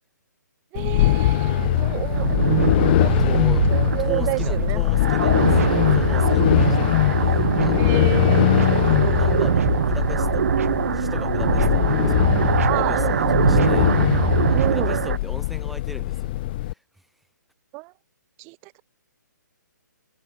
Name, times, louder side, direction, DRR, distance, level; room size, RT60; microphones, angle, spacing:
sound 1, 0.7-16.7, left 17 dB, 30° left, 0.6 m, -21 dB
voice 1, 0.7-2.3 3.0-4.8 7.8-9.3 12.6-13.9 14.5-15.0 17.7-17.9 18.4-18.8, right 28 dB, 20° right, 0.8 m, -30 dB
sound 2, 1.0-15.2, right 8 dB, 50° right, 0.6 m, -23 dB
voice 2, 3.2-3.7 4.0-8.2 9.2-13.9 14.2-16.8, right 1 dB, ahead, 2.3 m, -39 dB
figure-of-eight pair, 135°, 10 cm